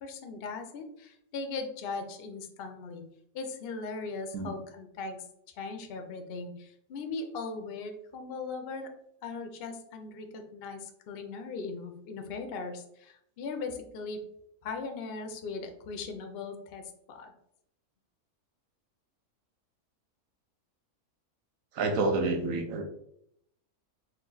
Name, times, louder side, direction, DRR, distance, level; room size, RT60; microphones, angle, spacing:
voice 1, 0.0-3.0 3.3-5.2 5.6-8.9 9.2-14.2 14.6-17.3, left 4 dB, 55° left, 5 dB, 0.7 m, -39 dB
voice 2, 21.8-22.8, right 3 dB, 65° right, 5 dB, 1.1 m, -28 dB
4.4 x 2.5 x 3.9 m, 0.74 s
omnidirectional pair, 1.6 m